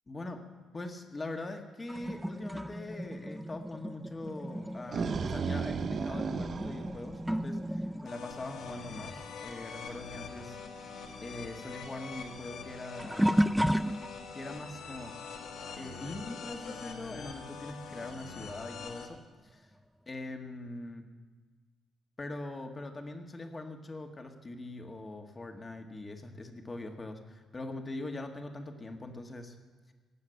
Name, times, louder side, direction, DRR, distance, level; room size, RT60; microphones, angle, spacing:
voice 1, 0.1-0.4 0.7-10.6 11.2-13.3 14.3-15.3 15.8-19.7 20.1-21.0 22.2-29.5, left 2 dB, 25° left, 4 dB, 1.7 m, -42 dB
sound 1, 1.9-9.9 10.1-14.5 15.1-15.4 17.7-17.8 18.6-18.7, equal, 5° right, 0.4 m, -34 dB
sound 2, 4.6-7.8, right 6 dB, 50° right, 0.6 m, -35 dB
sound 3, 8.0-19.1, left 5 dB, 75° left, 1.7 m, -44 dB
18.0 x 7.2 x 8.1 m, 1.4 s
cardioid pair, 90°, 0 cm